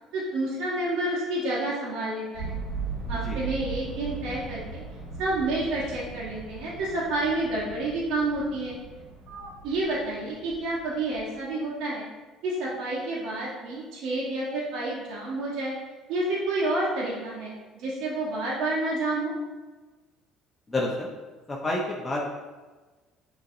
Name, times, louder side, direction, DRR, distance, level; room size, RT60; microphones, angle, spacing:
voice 1, 0.1-2.5 3.1-4.8 5.2-8.8 9.3-12.1 12.4-15.7 16.1-19.3, right 2 dB, 70° right, -6 dB, 1.2 m, -29 dB
sound 1, 2.3-11.4, right 4 dB, 85° right, 1.4 m, -38 dB
voice 2, 20.7-21.1 21.5-22.2, left 1 dB, 20° left, -4 dB, 0.8 m, -29 dB
6.2 x 3.1 x 2.7 m, 1.3 s
hypercardioid pair, 70°, 0 cm